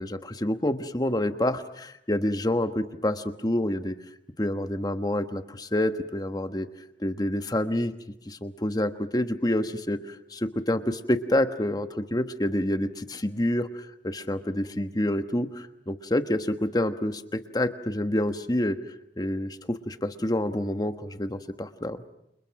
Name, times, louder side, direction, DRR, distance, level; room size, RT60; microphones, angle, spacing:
voice 1, 0.0-3.9 4.4-6.7 7.0-7.9 8.3-18.8 19.2-22.0, left 1 dB, 20° left, 9 dB, 1.3 m, -28 dB
29.5 x 27.5 x 6.0 m, 0.81 s
head